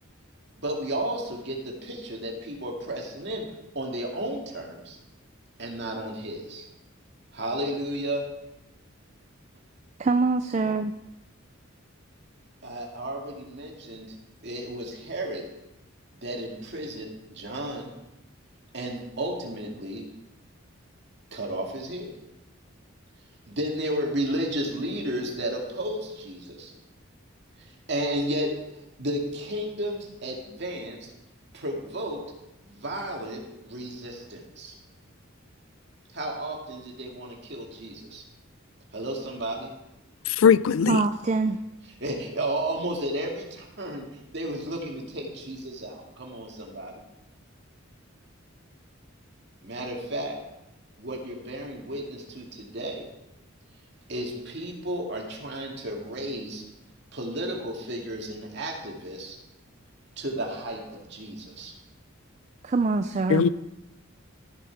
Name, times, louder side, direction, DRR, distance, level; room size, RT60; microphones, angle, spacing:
voice 1, 0.6-3.5 3.7-5.0 5.6-6.6 7.3-8.2 12.6-14.2 14.4-15.4 16.2-17.9 18.7-20.0 21.3-22.1 23.5-26.7 27.6-28.5 29.0-31.1 31.5-32.2 32.6-34.7 36.1-38.2 38.9-39.7 42.0-47.0 49.6-50.4 51.0-53.1 54.1-56.6 57.1-59.4 60.2-61.7, right 1 dB, 55° right, 2.2 m, -33 dB
voice 2, 10.0-10.9 40.9-41.6 62.6-63.4, right 3 dB, 35° right, 0.3 m, -24 dB
voice 3, 40.3-41.0 63.3-63.5, left 7 dB, 70° left, 0.3 m, -19 dB
13.5 x 7.2 x 4.7 m
head